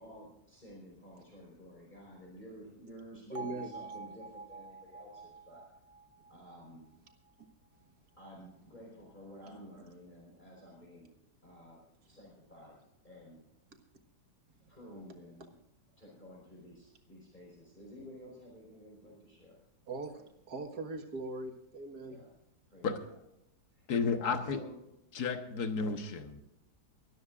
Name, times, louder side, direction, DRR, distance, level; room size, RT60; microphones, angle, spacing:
voice 1, 0.0-5.6 6.3-6.8 8.2-11.1 11.4-11.8 12.1-12.8 13.0-13.4 14.7-15.5 16.0-19.6 22.0-22.3 22.7-23.2 23.7-24.7 25.5-25.6, equal, 25° left, -3 dB, 4.9 m, -52 dB
Bell, 3.3-7.4, right 4 dB, 55° right, 0.3 m, -48 dB
voice 2, 3.3-3.7 19.9-22.2, right 2 dB, 70° right, 4 dB, 2.1 m, -40 dB
voice 3, 23.9-24.6 25.2-26.4, left 5 dB, 65° left, 6 dB, 1.8 m, -32 dB
22.5 x 13.5 x 2.5 m, 0.84 s
omnidirectional pair, 1.8 m